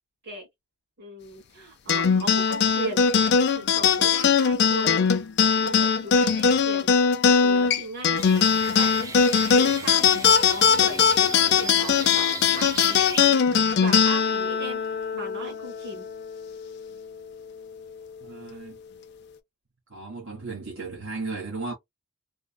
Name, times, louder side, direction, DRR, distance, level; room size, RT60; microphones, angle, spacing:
voice 1, 1.0-3.1 3.5-5.0 5.6-6.9 7.4-8.2 8.7-8.9 9.5-14.8 15.1-16.0, right 2 dB, 50° right, 1.8 m, -37 dB
sound 1, 1.9-16.6, left 6 dB, 50° left, 0.4 m, -21 dB
sound 2, 8.2-13.3, right 4 dB, 15° right, 0.4 m, -37 dB
voice 2, 18.2-18.8 19.9-21.7, right 3 dB, 65° right, 1.2 m, -35 dB
3.4 x 2.2 x 2.2 m
head